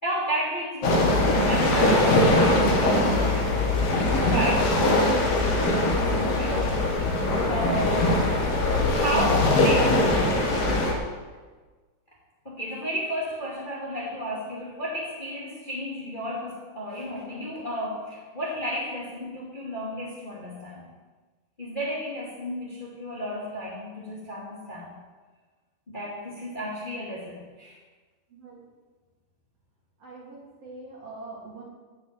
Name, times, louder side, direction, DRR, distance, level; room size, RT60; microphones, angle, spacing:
voice 1, 0.0-3.5 4.3-4.8 6.2-6.8 7.5-8.5 8.9-10.0 12.4-20.9 21.6-25.0 25.9-27.8, equal, 20° left, -5 dB, 2.1 m, -32 dB
sound 1, 0.8-10.9, left 2 dB, 55° left, 2.7 m, -22 dB
voice 2, 30.0-31.6, right 3 dB, 50° right, -4 dB, 4.0 m, -43 dB
12.5 x 6.2 x 8.8 m, 1.4 s
omnidirectional pair, 3.6 m